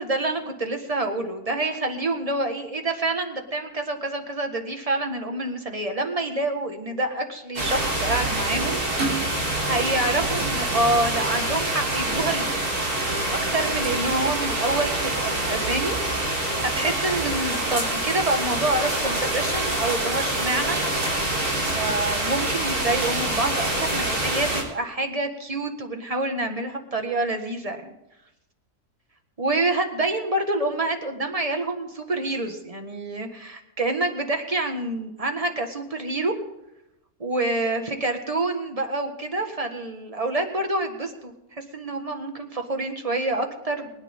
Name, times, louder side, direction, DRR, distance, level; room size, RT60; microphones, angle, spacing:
voice 1, 0.0-8.8 9.4-12.6 13.3-16.0 16.6-20.8 21.6-27.9 29.4-36.3 37.2-43.9, right 2 dB, 25° right, 5 dB, 1.6 m, -27 dB
sound 1, 7.6-24.6, right 1 dB, 80° right, 4.0 m, -26 dB
23.5 x 9.8 x 3.7 m, 0.89 s
omnidirectional pair, 1.6 m